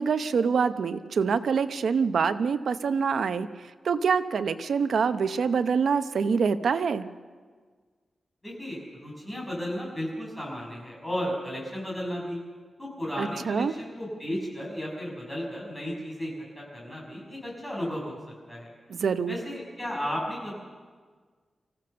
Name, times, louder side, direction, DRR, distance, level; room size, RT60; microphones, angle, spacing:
voice 1, 0.0-3.5 3.8-7.1 13.2-13.8 18.9-19.4, right 6 dB, 75° right, 10 dB, 0.8 m, -25 dB
voice 2, 8.4-12.4 12.8-18.2 18.5-18.7 19.3-20.6, equal, 10° left, -3 dB, 6.4 m, -34 dB
24.5 x 15.5 x 6.8 m, 1.5 s
wide cardioid pair, 175°, 0 cm